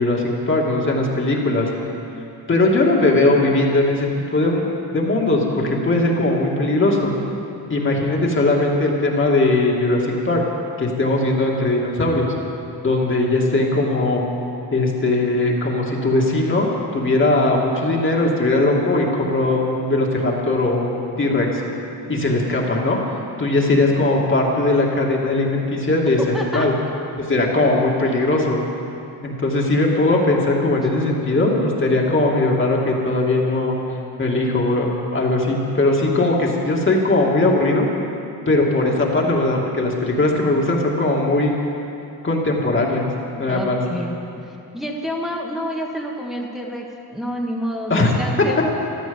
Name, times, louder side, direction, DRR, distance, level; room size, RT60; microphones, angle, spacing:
voice 1, 0.0-1.7 2.5-4.6 4.9-7.1 7.7-10.4 10.8-12.3 12.8-14.2 14.7-16.7 16.9-21.6 22.1-23.0 23.4-26.7 27.2-28.6 29.2-33.8 34.2-37.9 38.5-41.5 42.2-43.1 43.4-43.8 47.9-48.1, left 2 dB, 30° left, -2 dB, 2.5 m, -19 dB
voice 2, 26.3-26.7 43.5-44.2 44.4-46.9 47.1-48.6, equal, ahead, -2 dB, 1.8 m, -28 dB
14.0 x 12.5 x 7.2 m, 2.7 s
cardioid pair, 110°, 38 cm